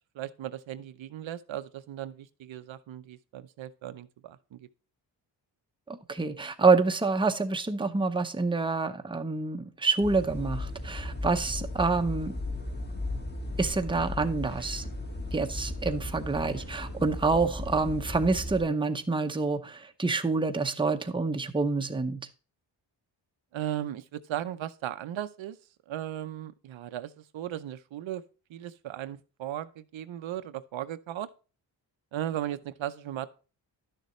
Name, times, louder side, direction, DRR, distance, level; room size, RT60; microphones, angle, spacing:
voice 1, 0.1-4.7 23.5-25.6 25.9-28.2 28.5-31.3 32.1-33.3, right 11 dB, 90° right, 0.7 m, -37 dB
voice 2, 5.9-12.3 13.6-14.8 15.3-22.3, right 3 dB, 10° right, 0.7 m, -27 dB
sound 1, 10.0-18.6, left 1 dB, 25° left, 1.6 m, -36 dB
11.5 x 6.7 x 3.1 m
wide cardioid pair, 120°, 45 cm